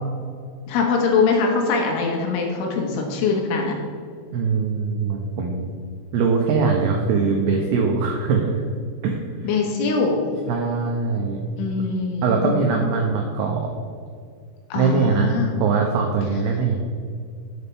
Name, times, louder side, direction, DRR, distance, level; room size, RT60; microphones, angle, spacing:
voice 1, 0.7-3.8 9.4-10.2 11.6-12.6 14.7-15.6, left 4 dB, 75° left, 1 dB, 3.7 m, -22 dB
voice 2, 4.3-5.7 6.1-8.6 9.0-9.2 10.5-11.4 12.2-13.7 14.7-15.3 15.6-16.9, right 5 dB, 85° right, 1 dB, 2.3 m, -21 dB
11.0 x 8.1 x 3.5 m, 2.2 s
omnidirectional pair, 5.7 m